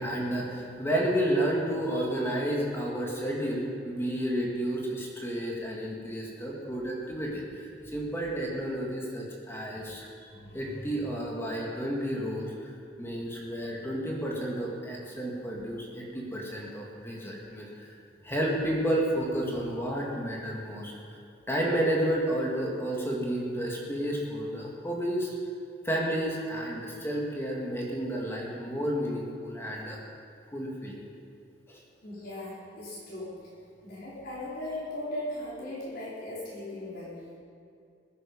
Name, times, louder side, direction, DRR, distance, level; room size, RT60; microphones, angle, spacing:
voice 1, 0.0-17.9 18.2-21.2 21.5-25.4 25.8-30.0 30.5-31.0 31.7-31.8, right 1 dB, 15° left, -3 dB, 2.4 m, -31 dB
voice 2, 10.3-10.9 12.9-13.2 32.0-33.4 33.8-37.4, left 1 dB, 55° left, -7 dB, 4.3 m, -39 dB
21.0 x 9.9 x 5.6 m, 2.4 s
head